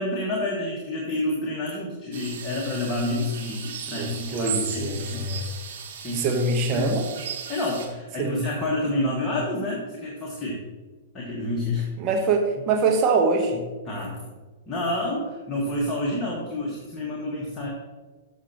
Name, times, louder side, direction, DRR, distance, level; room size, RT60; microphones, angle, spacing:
voice 1, 0.0-5.3 6.0-6.4 6.7-6.9 7.5-10.6 11.1-11.9 13.9-14.3 14.7-17.7, left 1 dB, 20° left, -4 dB, 1.8 m, -29 dB
sound 1, 2.1-7.9, right 7 dB, 55° right, 1.6 m, -36 dB
voice 2, 4.0-5.4 6.1-7.1 8.2-8.4 12.0-13.6, right 3 dB, 35° right, 3 dB, 1.2 m, -24 dB
13.0 x 6.5 x 3.0 m, 1.3 s
figure-of-eight pair, 105°, 0 cm